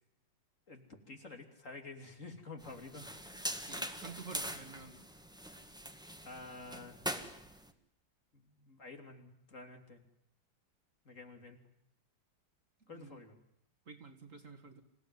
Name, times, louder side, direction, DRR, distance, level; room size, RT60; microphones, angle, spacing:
voice 1, 0.7-3.4 6.2-7.0 8.3-10.0 11.0-11.6 12.9-13.4, left 3 dB, 45° left, 5 dB, 3.4 m, -50 dB
sound 1, 2.6-7.7, equal, ahead, 1.7 m, -43 dB
voice 2, 3.6-5.0 12.9-13.2 13.9-14.8, right 4 dB, 45° right, 4 dB, 2.3 m, -50 dB
27.5 x 17.0 x 9.6 m, 0.81 s
omnidirectional pair, 2.0 m